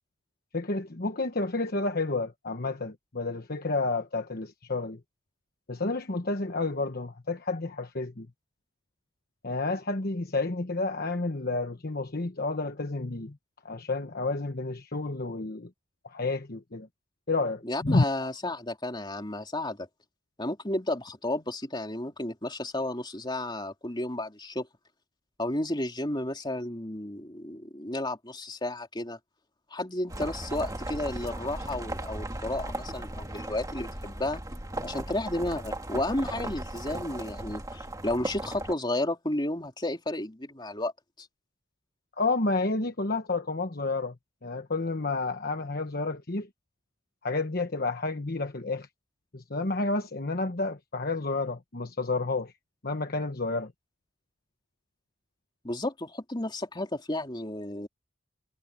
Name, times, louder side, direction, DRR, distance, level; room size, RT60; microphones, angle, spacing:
voice 1, 0.5-5.0 5.7-8.3 9.4-13.4 13.6-15.7 16.0-16.9 17.3-18.3 42.2-44.1 44.4-46.5 47.2-48.9 49.3-52.5 52.8-53.7, left 3 dB, 50° left, 1.2 m, -30 dB
voice 2, 17.6-19.9 20.4-24.7 25.4-29.2 29.7-34.4 34.8-40.9 41.2-41.3 55.6-57.9, left 1 dB, 20° left, 3.3 m, -32 dB
sound 1, 30.1-38.7, right 1 dB, 15° right, 2.3 m, -37 dB
head